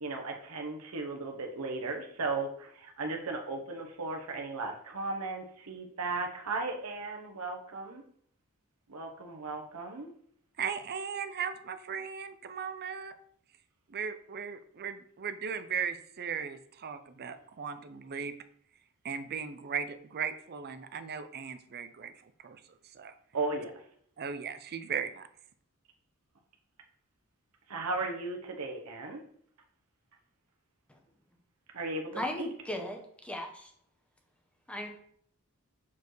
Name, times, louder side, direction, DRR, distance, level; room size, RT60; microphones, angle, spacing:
voice 1, 0.0-8.0 8.9-10.1 23.3-23.7 27.7-29.2 31.7-32.5, right 3 dB, 90° right, 2 dB, 0.9 m, -36 dB
voice 2, 10.6-13.1 13.9-18.3 19.0-22.1 22.4-22.6 23.0-23.1 24.2-25.3, right 6 dB, 45° right, 10 dB, 0.5 m, -37 dB
voice 3, 32.2-33.7 34.7-34.9, left 1 dB, 5° left, 2 dB, 1.0 m, -37 dB
7.1 x 4.6 x 3.1 m, 0.64 s
head